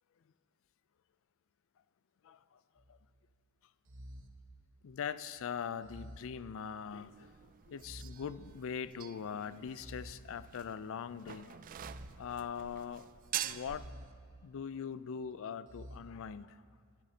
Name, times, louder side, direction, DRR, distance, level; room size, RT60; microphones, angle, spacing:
voice 1, 2.2-2.6 2.9-3.0 4.8-11.6 12.2-13.1 13.4-13.9 14.4-16.6, left 7 dB, 65° left, 16 dB, 0.4 m, -42 dB
sound 1, 2.8-3.2 3.9-5.2 5.8-7.1 7.8-9.1 9.8-11.1 11.7-13.0 13.7-15.0 15.7-16.0, equal, 60° right, 1.0 m, -52 dB
sound 2, 6.9-13.9, right 11 dB, 40° right, 0.3 m, -46 dB
20.5 x 11.5 x 2.8 m, 2.1 s
head